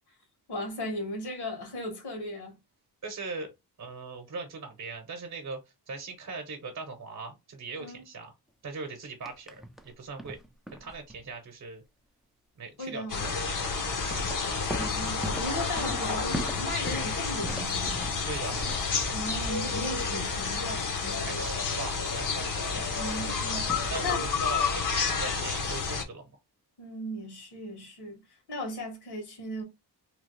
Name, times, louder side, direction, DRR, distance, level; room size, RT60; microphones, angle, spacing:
voice 1, 0.5-2.6 7.8-8.0 12.8-13.3 14.7-18.1 19.1-21.5 22.9-24.3 26.8-28.2 28.5-29.6, left 1 dB, 75° left, 1.7 m, -37 dB
voice 2, 3.0-3.5 3.8-5.6 5.9-8.3 8.6-10.4 10.8-11.8 12.6-14.3 18.3-18.6 21.2-22.5 23.9-26.3, right 4 dB, 45° right, 0.9 m, -40 dB
sound 1, 9.3-9.9 10.2-11.3 13.9-19.3 22.8-23.2 23.7-24.0, right 1 dB, ahead, 0.4 m, -39 dB
sound 2, 13.1-26.0, left 5 dB, 50° left, 0.9 m, -30 dB
3.1 x 2.3 x 3.1 m
cardioid pair, 110°, 40 cm